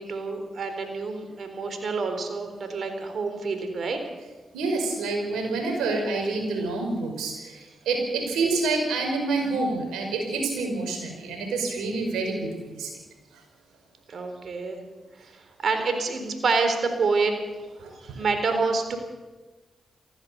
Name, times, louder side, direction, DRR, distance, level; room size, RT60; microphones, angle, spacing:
voice 1, 0.0-4.0 14.1-14.8 15.2-15.4 15.6-17.3 18.0-19.0, right 4 dB, 65° right, 6 dB, 4.0 m, -27 dB
voice 2, 4.5-12.9 17.8-17.9, right 3 dB, 85° right, 3 dB, 5.3 m, -27 dB
23.0 x 16.0 x 7.0 m, 1.2 s
supercardioid pair, 45°, 0 cm